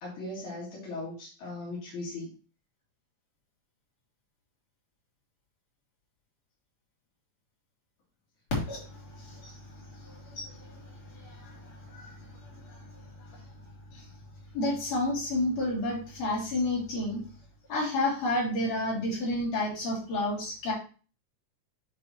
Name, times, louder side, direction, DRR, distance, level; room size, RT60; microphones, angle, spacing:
voice 1, 0.0-2.3 9.4-9.5, left 2 dB, 80° left, -6 dB, 3.6 m, -38 dB
voice 2, 10.1-10.8 11.2-11.5 11.9-12.1 12.7-12.8 14.5-17.2 17.7-20.7, left 1 dB, 60° left, -6 dB, 4.2 m, -30 dB
10.5 x 3.6 x 3.0 m, 0.36 s
omnidirectional pair, 3.3 m